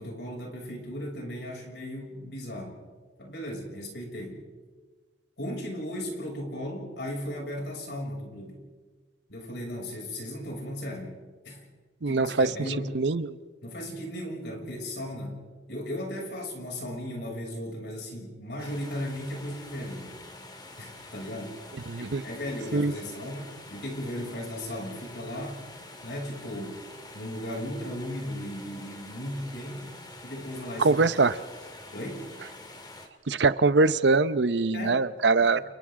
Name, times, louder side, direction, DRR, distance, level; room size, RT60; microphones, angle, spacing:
voice 1, 0.0-2.8 3.2-4.4 5.4-8.6 9.3-11.2 11.4-11.7 12.1-12.9 13.6-15.4 15.7-20.2 20.8-21.6 22.0-25.6 26.0-26.8 27.1-30.0 30.2-31.0 31.9-32.3 34.7-35.1 35.4-35.7, equal, 75° left, -1 dB, 6.7 m, -36 dB
voice 2, 12.0-12.5 12.9-13.4 21.9-22.2 22.7-22.9 30.8-31.4 33.3-35.6, right 3 dB, 80° right, 14 dB, 0.8 m, -23 dB
sound 1, 18.6-33.1, left 2 dB, 25° left, 2.2 m, -47 dB
29.5 x 29.0 x 3.8 m, 1.5 s
head